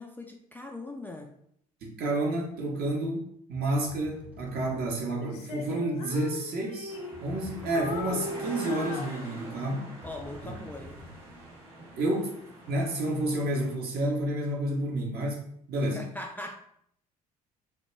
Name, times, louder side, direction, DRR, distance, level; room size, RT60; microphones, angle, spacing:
voice 1, 0.0-1.3 10.0-11.0 15.8-16.6, left 2 dB, 10° left, 2 dB, 0.3 m, -40 dB
voice 2, 1.8-9.9 12.0-12.3 12.7-16.0, right 1 dB, 55° right, 0 dB, 0.8 m, -30 dB
sound 1, 2.5-2.7 3.5-5.2 7.1-8.5 10.0-11.6, left 1 dB, 10° right, 0.7 m, -49 dB
Female singing, 5.2-7.4 7.7-9.8, left 3 dB, 85° left, 0.4 m, -38 dB
sound 2, 6.9-13.7, right 1 dB, 80° right, 1.1 m, -45 dB
2.2 x 2.2 x 3.0 m, 0.67 s
hypercardioid pair, 60°, 19 cm